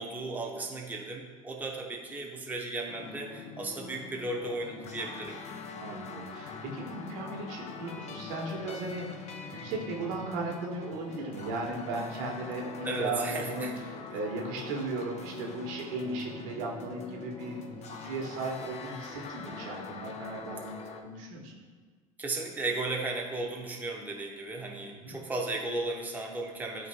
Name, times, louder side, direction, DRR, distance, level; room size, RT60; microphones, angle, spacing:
voice 1, 0.0-5.4 12.8-13.7 22.2-26.9, right 2 dB, 10° right, -1 dB, 0.8 m, -35 dB
sound 1, 2.9-21.0, left 5 dB, 40° left, 0.7 m, -43 dB
voice 2, 5.8-21.5 24.9-25.1, right 2 dB, 65° right, -1 dB, 1.4 m, -36 dB
12.0 x 4.0 x 2.2 m, 1.5 s
hypercardioid pair, 75°, 18 cm